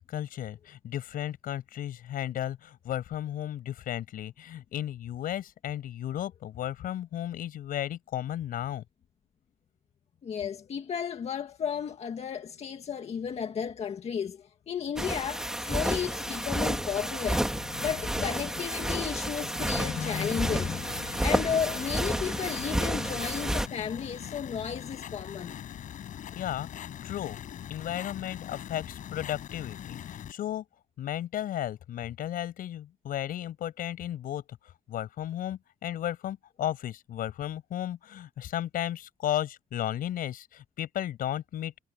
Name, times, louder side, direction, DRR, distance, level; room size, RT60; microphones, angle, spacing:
voice 1, 0.1-8.8 18.2-18.3 26.3-26.7 27.0-27.4 27.7-30.6 31.0-34.6 34.9-41.7, left 11 dB, 85° left, 6.0 m, -34 dB
voice 2, 10.2-25.6, left 7 dB, 50° left, 1.8 m, -33 dB
sound 1, 15.0-23.7, right 1 dB, 5° right, 2.3 m, -31 dB
sound 2, 19.7-30.3, left 10 dB, 70° left, 4.1 m, -42 dB
cardioid pair, 145°, 14 cm